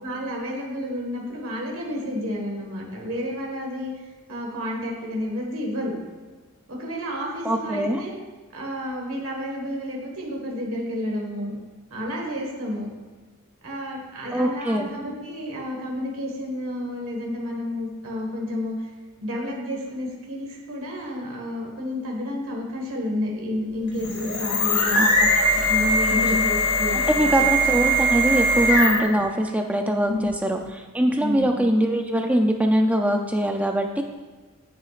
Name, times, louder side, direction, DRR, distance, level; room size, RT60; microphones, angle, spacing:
voice 1, 0.0-3.9 4.3-5.9 6.7-8.1 8.5-11.5 11.9-12.9 13.6-18.9 19.2-25.0 25.5-27.4 30.0-30.6 31.2-31.6, left 1 dB, 65° right, -1 dB, 1.7 m, -30 dB
voice 2, 7.4-8.0 14.3-14.9 25.0-25.3 26.1-26.2 26.9-30.6 30.9-34.0, right 1 dB, 5° right, 3 dB, 0.4 m, -22 dB
sound 1, 23.9-29.2, equal, 75° left, 2.2 m, -21 dB
9.5 x 8.9 x 2.5 m, 1.3 s
head